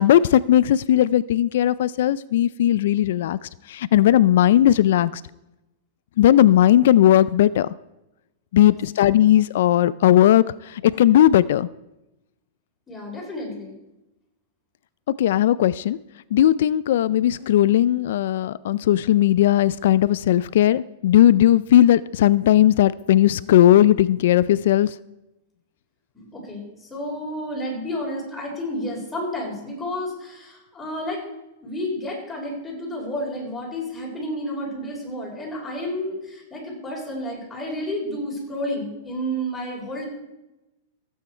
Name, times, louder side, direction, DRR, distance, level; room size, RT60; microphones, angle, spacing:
voice 1, 0.0-5.2 6.2-7.7 8.5-11.7 15.2-16.0 16.3-24.9, left 12 dB, 70° left, 18 dB, 0.3 m, -17 dB
voice 2, 12.9-13.8 26.1-31.2 31.6-40.1, equal, 10° left, -3 dB, 4.2 m, -31 dB
15.5 x 8.5 x 4.4 m, 0.96 s
supercardioid pair, 155°, 0 cm